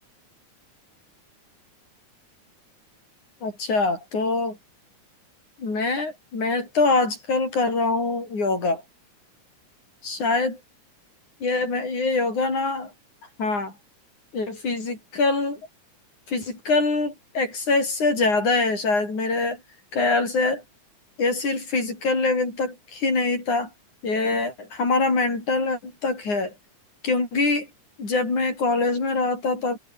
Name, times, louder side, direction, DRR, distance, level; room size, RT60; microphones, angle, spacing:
voice 1, 3.4-4.6 5.6-8.8 10.0-10.6 11.4-12.9 13.4-13.7 14.3-15.6 16.3-19.6 19.9-20.6 21.2-23.7 24.0-26.5 27.0-27.7 28.0-29.8, left 3 dB, 75° left, 9.3 m, -24 dB
omnidirectional pair, 3.5 m